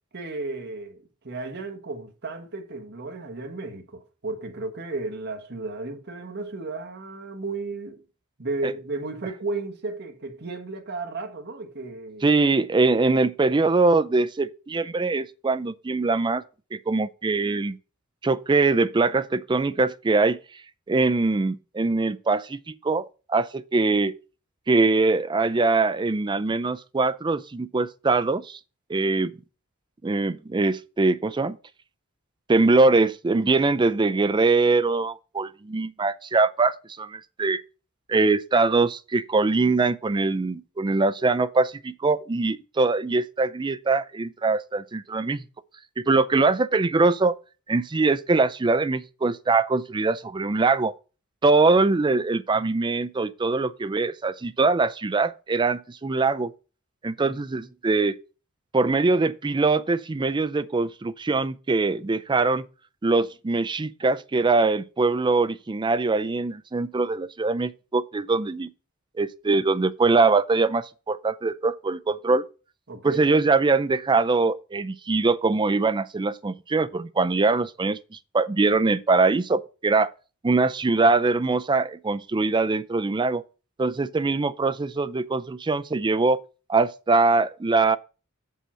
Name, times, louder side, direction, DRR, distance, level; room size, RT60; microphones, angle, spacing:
voice 1, 0.1-8.0 8.4-12.3 52.5-52.7 57.2-57.4 72.9-73.3, right 3 dB, 50° right, 1.4 m, -34 dB
voice 2, 12.2-16.4 16.7-17.8 18.2-20.4 20.9-24.1 24.7-28.6 28.9-29.3 30.0-31.6 32.5-37.6 38.1-45.4 46.0-47.3 47.7-50.9 51.4-56.5 57.0-58.2 58.7-62.6 63.0-68.7 69.2-72.4 73.0-80.1 80.4-83.4 83.8-86.4 86.7-88.0, right 3 dB, 20° right, 0.4 m, -22 dB
7.4 x 5.5 x 5.5 m
head